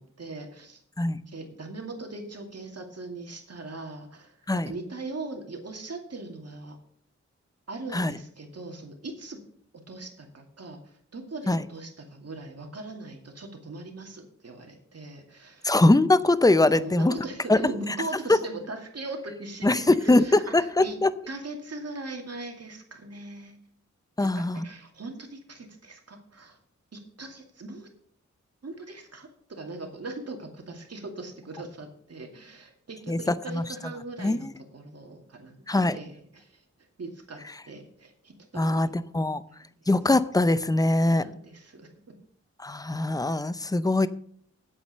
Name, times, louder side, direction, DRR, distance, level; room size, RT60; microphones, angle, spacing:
voice 1, 0.0-0.8 1.3-6.8 7.7-9.4 9.9-10.8 11.1-15.7 16.7-21.0 21.3-23.6 24.2-26.6 26.9-27.9 28.6-36.6 37.0-39.0 41.1-41.9, right 2 dB, 60° right, 3 dB, 2.4 m, -40 dB
voice 2, 15.6-17.1 17.5-17.6 19.6-21.1 24.2-24.7 33.1-33.2 33.5-33.6 34.2-34.5 35.7-36.0 38.5-39.4 39.9-41.2 42.6-44.1, left 2 dB, 15° left, 15 dB, 0.6 m, -22 dB
8.6 x 8.4 x 6.6 m, 0.62 s
wide cardioid pair, 75°, 29 cm